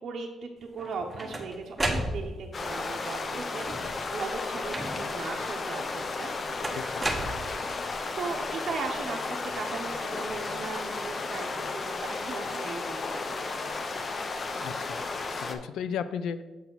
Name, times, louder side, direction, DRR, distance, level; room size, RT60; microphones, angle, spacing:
voice 1, 0.0-6.3 8.2-13.7, right 4 dB, 55° right, 0 dB, 0.7 m, -38 dB
sound 1, 0.8-2.6 3.5-4.0 4.7-5.3 6.6-7.9, right 1 dB, 15° right, 0.9 m, -33 dB
sound 2, 2.5-15.5, left 3 dB, 35° left, 0.5 m, -33 dB
voice 2, 14.6-16.4, left 7 dB, 90° left, 12 dB, 0.3 m, -35 dB
7.0 x 4.0 x 4.5 m, 1.1 s
cardioid pair, 105°, 0 cm